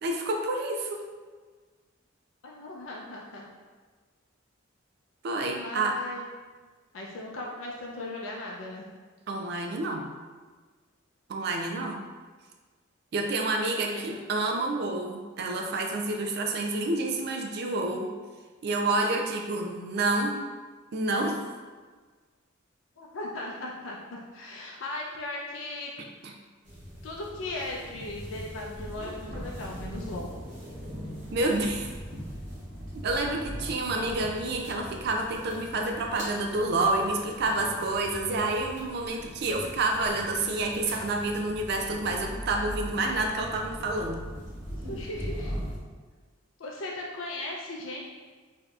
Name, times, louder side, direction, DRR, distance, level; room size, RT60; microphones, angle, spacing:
voice 1, 0.0-1.0 5.2-6.0 9.3-10.1 11.3-12.0 13.1-18.1 18.6-20.4 20.9-21.4 26.2-26.3 31.3-31.9 33.0-44.2, right 2 dB, 55° right, 2 dB, 0.3 m, -28 dB
voice 2, 2.4-3.4 5.6-6.3 6.9-8.8 13.5-14.2 23.0-25.9 27.0-30.3 33.9-34.1 44.7-45.5 46.6-48.0, left 2 dB, 75° left, -2 dB, 0.5 m, -38 dB
sound 1, 26.6-45.8, equal, 40° right, 1.0 m, -40 dB
4.7 x 2.7 x 2.3 m, 1.4 s
head